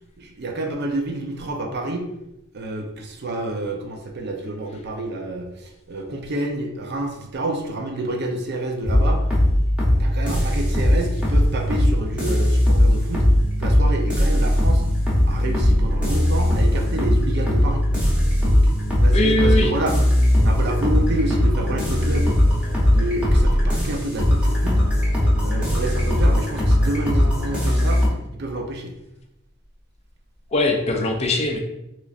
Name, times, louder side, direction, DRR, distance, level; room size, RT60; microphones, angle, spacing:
voice 1, 0.2-2.1 2.5-9.3 10.0-13.3 13.6-14.8 15.3-17.8 18.4-18.7 19.0-20.0 20.3-22.4 22.9-24.8 25.4-28.0 28.3-28.9, right 1 dB, 55° right, 3 dB, 0.5 m, -28 dB
sound 1, 8.8-28.1, left 1 dB, 5° right, 0.9 m, -19 dB
voice 2, 19.1-19.7 30.5-31.6, left 2 dB, 30° left, 2 dB, 0.4 m, -21 dB
3.7 x 3.1 x 2.5 m, 0.88 s
head